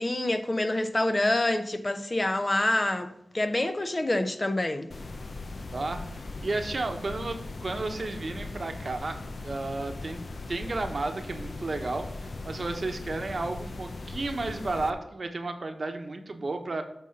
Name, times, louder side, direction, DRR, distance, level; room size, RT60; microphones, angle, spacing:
voice 1, 0.0-4.9, left 1 dB, 35° left, 0.8 m, -27 dB
sound 1, 4.9-14.9, left 2 dB, 65° left, 0.7 m, -39 dB
voice 2, 5.7-10.2 10.5-16.8, right 2 dB, 60° right, 1.1 m, -33 dB
8.1 x 4.1 x 5.4 m
cardioid pair, 40°, 0 cm